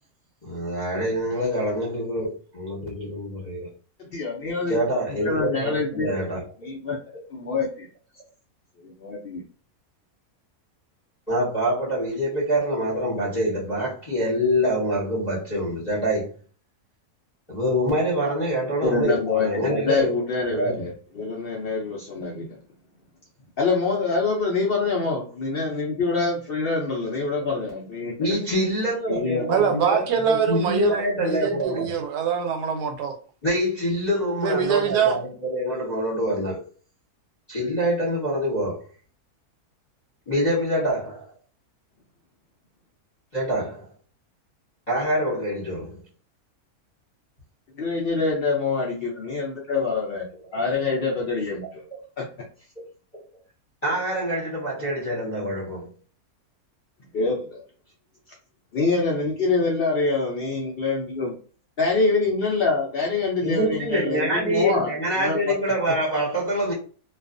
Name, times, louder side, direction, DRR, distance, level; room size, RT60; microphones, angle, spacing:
voice 1, 0.4-3.7 4.7-6.4 11.3-16.3 17.5-20.1 20.5-20.9 25.1-25.2 28.2-31.9 33.4-36.6 37.5-38.8 40.3-41.3 43.3-43.9 44.9-46.0 53.8-55.9 63.4-66.7, equal, 30° left, 0.8 m, -25 dB
voice 2, 4.1-4.8 5.1-6.1 6.6-7.0 7.3-7.9 9.0-9.4 18.8-22.6 23.6-28.1 29.1-29.5 47.8-50.3 50.5-51.9 52.2-52.3 57.1-57.6 58.7-61.4 61.8-64.9 65.2-65.6, left 4 dB, 75° left, 0.5 m, -25 dB
voice 3, 29.5-33.2 34.4-35.2, right 7 dB, 85° right, 1.1 m, -24 dB
2.4 x 2.3 x 2.4 m
omnidirectional pair, 1.6 m